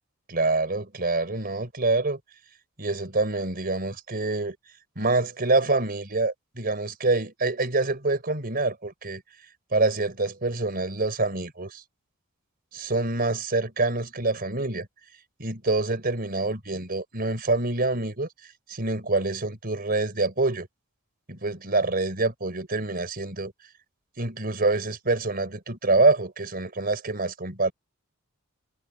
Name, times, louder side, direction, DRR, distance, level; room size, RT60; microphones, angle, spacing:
voice 1, 0.3-2.2 2.8-4.6 5.0-9.2 9.7-11.8 12.7-14.9 15.4-18.3 18.7-20.7 21.3-23.5 24.2-27.7, right 3 dB, 45° right, 4.4 m, -26 dB
head